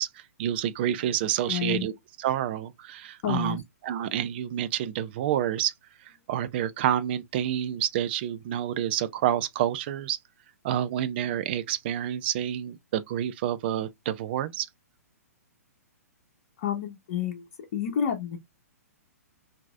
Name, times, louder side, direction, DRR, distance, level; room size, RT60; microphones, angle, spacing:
voice 1, 0.0-1.9 2.2-5.7 6.0-10.2 10.6-14.7, right 11 dB, 40° right, 0.5 m, -28 dB
voice 2, 1.5-1.9 3.2-3.6 16.6-18.4, left 9 dB, 40° left, 1.0 m, -30 dB
5.8 x 2.8 x 2.3 m
figure-of-eight pair, 115°, 9 cm